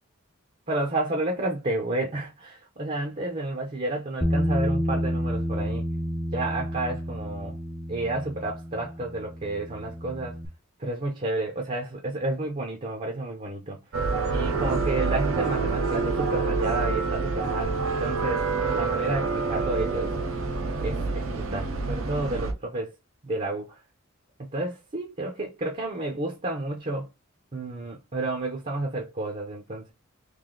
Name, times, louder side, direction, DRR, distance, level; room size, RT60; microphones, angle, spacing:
voice 1, 0.7-5.9 6.3-7.6 7.9-10.4 10.8-13.8 14.3-18.4 18.7-20.1 20.8-22.9 23.2-23.7 24.4-27.1 27.5-29.9, right 2 dB, 35° right, 0.7 m, -31 dB
Bass guitar, 4.2-10.5, equal, 10° left, 0.5 m, -30 dB
sound 1, 13.9-22.5, right 4 dB, 80° right, 0.8 m, -27 dB
3.2 x 2.6 x 3.8 m
head